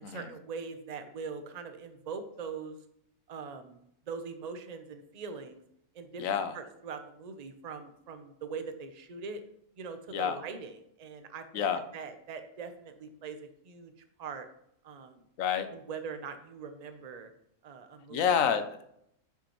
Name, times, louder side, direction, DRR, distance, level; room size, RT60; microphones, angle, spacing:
voice 1, 0.0-2.8 3.3-3.8 4.1-5.6 5.9-6.2 6.5-9.4 9.8-11.6 11.9-13.9 14.2-14.5 14.8-15.2 15.7-17.3 17.6-18.2, right 5 dB, 40° right, 8 dB, 0.6 m, -42 dB
voice 2, 6.2-6.6 10.1-10.4 11.5-11.8 15.4-15.7 18.1-18.8, left 7 dB, 75° left, 9 dB, 1.1 m, -28 dB
8.5 x 5.9 x 3.0 m, 0.73 s
omnidirectional pair, 1.4 m